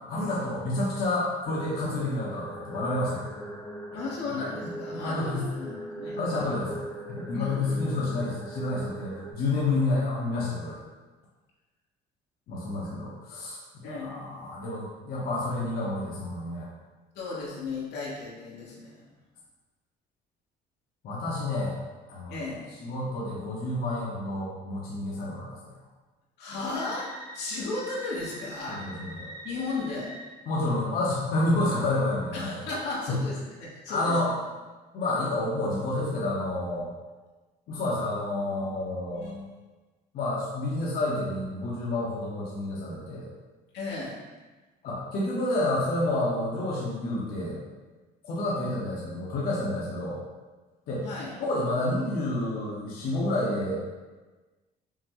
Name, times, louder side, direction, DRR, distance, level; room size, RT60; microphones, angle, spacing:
voice 1, 0.1-3.3 4.9-5.4 6.2-6.8 7.3-10.8 12.5-16.7 21.0-21.8 22.1-22.4 22.8-25.7 28.7-29.3 30.5-32.5 33.1-33.2 33.9-34.3 34.9-36.9 37.7-39.4 40.1-43.3 44.8-47.6 48.2-50.2 50.9-51.1 51.4-53.8, left 2 dB, 65° left, -5 dB, 0.9 m, -29 dB
sound 1, 1.4-9.3, right 1 dB, 5° left, 0.6 m, -41 dB
voice 2, 3.9-6.5 7.3-8.0 13.8-14.2 17.1-19.1 22.3-22.7 26.4-28.8 29.4-30.1 32.3-34.3 39.2-39.3 43.7-44.2 51.0-51.3, left 3 dB, 85° left, -5 dB, 1.1 m, -35 dB
sound 2, 26.7-30.2, right 1 dB, 25° right, 1.1 m, -44 dB
5.7 x 2.1 x 3.0 m, 1.2 s
cardioid pair, 110°, 17 cm